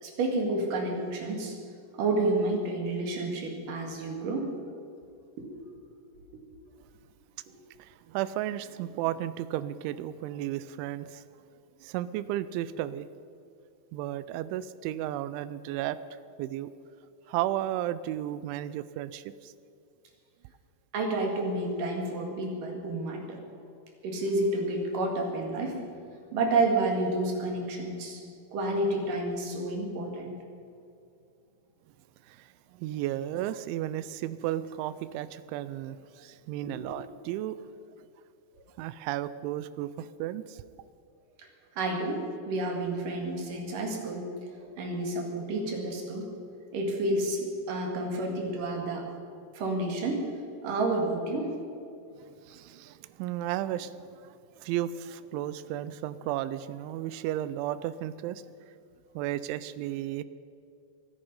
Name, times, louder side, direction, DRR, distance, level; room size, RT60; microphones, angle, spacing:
voice 1, 0.0-1.6 1.9-4.5 5.4-5.5 20.9-23.4 24.0-25.8 26.3-28.2 28.5-30.3 36.6-36.8 41.4-41.5 41.8-46.3 46.7-49.0 49.5-50.3 50.6-51.6, right 2 dB, 55° right, 1 dB, 3.0 m, -30 dB
voice 2, 7.8-11.3 11.8-13.1 13.9-16.0 16.4-16.7 17.3-19.5 32.2-37.6 38.0-38.1 38.8-40.6 52.2-58.4 59.2-60.2, right 13 dB, 85° right, 15 dB, 2.8 m, -34 dB
24.0 x 10.0 x 5.4 m, 2.5 s
omnidirectional pair, 5.6 m